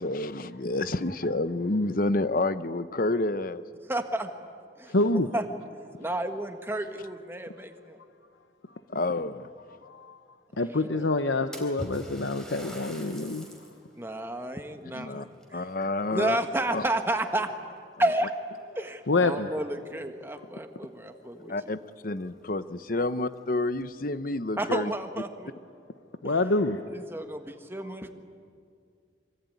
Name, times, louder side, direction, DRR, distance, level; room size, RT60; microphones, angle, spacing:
voice 1, 0.0-3.6 8.9-9.5 14.9-15.2 15.5-16.4 16.7-16.8 21.5-24.9, left 2 dB, 50° left, 13 dB, 0.9 m, -29 dB
voice 2, 3.9-4.3 4.8-4.9 5.3-5.4 6.0-8.0 10.5-11.1 14.0-15.6 16.1-17.5 18.0-18.3 18.7-21.5 22.9-23.1 24.6-25.5 26.9-28.1, right 1 dB, 15° right, 6 dB, 1.5 m, -31 dB
voice 3, 4.9-5.3 9.8-10.2 10.6-13.5 19.1-19.5 21.3-21.5 26.2-26.8, left 2 dB, 85° left, 8 dB, 1.0 m, -26 dB
Splash splatter, 11.5-13.8 14.3-14.4 15.3-16.4 16.7-17.2 18.0-18.1 18.6-18.7 20.8-20.9 21.2-21.3 21.9-22.0 22.4-22.5 23.2-23.8, equal, 5° left, 3.6 m, -44 dB
25.5 x 24.5 x 9.5 m, 2.3 s
head